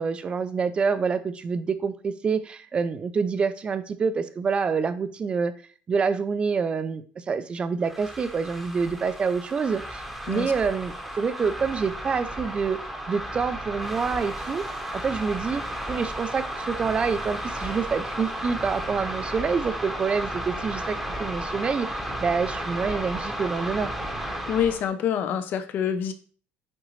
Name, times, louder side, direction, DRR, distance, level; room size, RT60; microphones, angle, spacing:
voice 1, 0.0-5.5 5.9-12.8 13.1-14.6 14.9-15.6 15.9-23.9, right 5 dB, 25° right, 13 dB, 0.5 m, -27 dB
sound 1, 7.8-24.8, right 1 dB, ahead, 1.0 m, -33 dB
voice 2, 24.5-26.1, left 8 dB, 45° left, 10 dB, 0.7 m, -26 dB
8.7 x 3.9 x 3.1 m, 0.42 s
cardioid pair, 150°, 4 cm